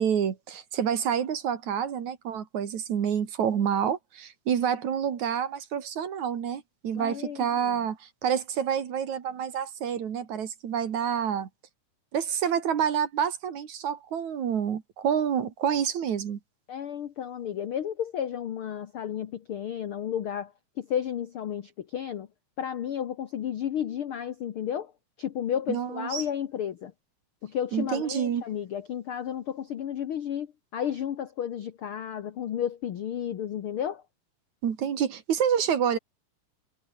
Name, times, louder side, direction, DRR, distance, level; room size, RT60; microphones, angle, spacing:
voice 1, 0.0-11.5 12.1-16.4 25.7-26.2 27.7-28.4 34.6-36.0, right 8 dB, 55° right, 3.2 m, -28 dB
voice 2, 6.9-7.8 16.7-22.3 22.6-24.9 25.2-26.9 27.4-34.0, left 9 dB, 80° left, 1.2 m, -32 dB
omnidirectional pair, 4.1 m